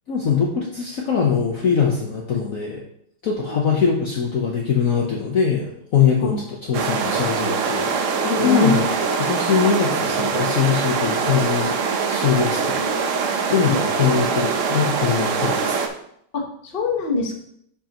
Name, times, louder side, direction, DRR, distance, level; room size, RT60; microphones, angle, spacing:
voice 1, 0.1-2.8 3.2-7.9 8.2-8.9 9.2-11.7 12.1-15.8, left 7 dB, 55° left, -1 dB, 1.1 m, -22 dB
sound 1, 6.7-15.9, right 5 dB, 60° right, 0.8 m, -23 dB
voice 2, 8.4-9.0 13.7-13.8 16.3-17.4, left 3 dB, 35° left, 1 dB, 1.1 m, -24 dB
10.0 x 5.2 x 2.9 m, 0.70 s
omnidirectional pair, 2.0 m